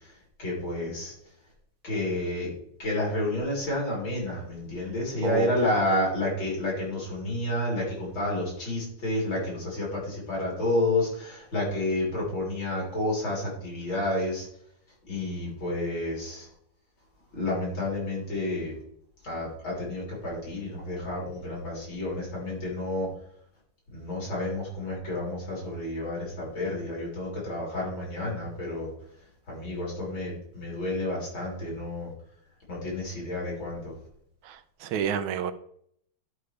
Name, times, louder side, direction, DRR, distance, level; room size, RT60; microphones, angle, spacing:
voice 1, 0.0-1.3 1.8-2.5 2.8-14.5 15.0-16.5 17.3-18.8 19.2-23.1 23.9-32.1 32.7-34.0, left 1 dB, 70° left, -4 dB, 4.5 m, -30 dB
voice 2, 34.4-35.5, right 7 dB, 80° right, 9 dB, 1.5 m, -29 dB
11.5 x 5.4 x 3.4 m, 0.68 s
omnidirectional pair, 2.2 m